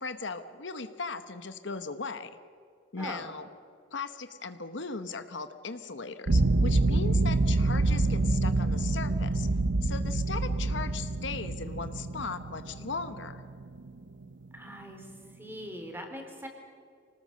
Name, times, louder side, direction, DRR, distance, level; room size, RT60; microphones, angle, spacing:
voice 1, 0.0-2.3 2.9-3.5 3.9-9.5 9.8-13.4, left 4 dB, 70° left, 10 dB, 1.1 m, -38 dB
sound 1, 6.3-13.9, right 2 dB, 70° right, 0.8 m, -27 dB
voice 2, 14.5-15.1 15.4-16.5, equal, 10° right, 3 dB, 3.6 m, -41 dB
26.0 x 19.0 x 6.6 m, 2.3 s
head